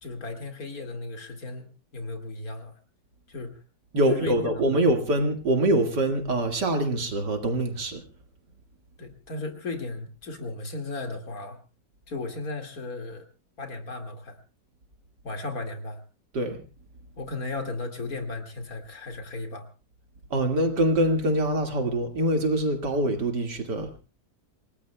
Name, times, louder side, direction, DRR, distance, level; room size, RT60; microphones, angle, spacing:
voice 1, 0.0-2.8 3.3-3.6 4.0-4.4 4.7-4.9 9.0-11.6 12.1-13.2 13.6-14.4 15.2-16.0 17.2-19.7, left 3 dB, 55° left, 2.6 m, -35 dB
voice 2, 3.9-8.0 16.3-16.6 20.3-24.0, right 1 dB, 75° right, 2.6 m, -24 dB
28.0 x 18.5 x 2.3 m
omnidirectional pair, 1.9 m